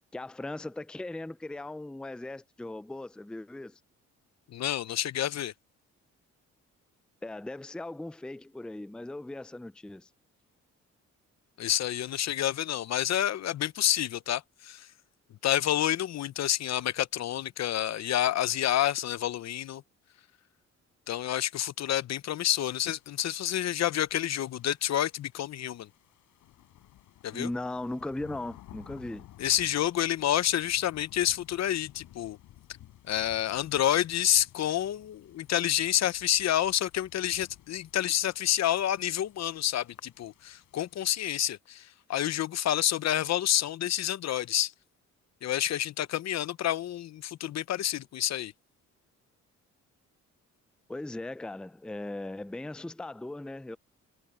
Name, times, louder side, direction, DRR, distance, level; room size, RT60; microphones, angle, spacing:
voice 1, 0.1-3.8 7.2-10.1 27.3-29.3 50.9-53.8, left 2 dB, 5° left, 0.5 m, -38 dB
voice 2, 4.5-5.5 11.6-14.9 15.4-19.8 21.1-25.9 27.2-27.5 29.4-32.4 33.1-44.7 45.4-48.5, left 12 dB, 60° left, 0.8 m, -29 dB
sound 1, 22.9-41.3, left 14 dB, 85° left, 7.7 m, -56 dB
cardioid pair, 90°, 30 cm